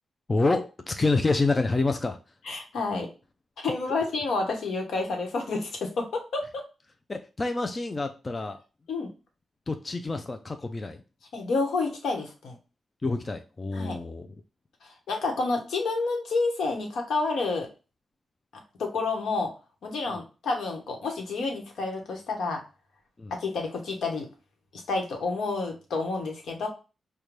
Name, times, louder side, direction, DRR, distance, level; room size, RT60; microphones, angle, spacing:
voice 1, 0.3-2.2 7.1-8.6 9.7-11.0 13.0-14.3 20.1-20.2 23.2-23.3, left 3 dB, 20° left, 7 dB, 0.3 m, -27 dB
voice 2, 2.4-3.1 3.6-6.6 8.9-9.1 11.3-12.6 13.7-14.0 14.8-17.7 18.8-19.5 19.8-22.6 23.3-24.3 24.7-26.7, left 3 dB, 80° left, 3 dB, 1.0 m, -29 dB
5.1 x 2.2 x 3.1 m, 0.32 s
wide cardioid pair, 155°, 0 cm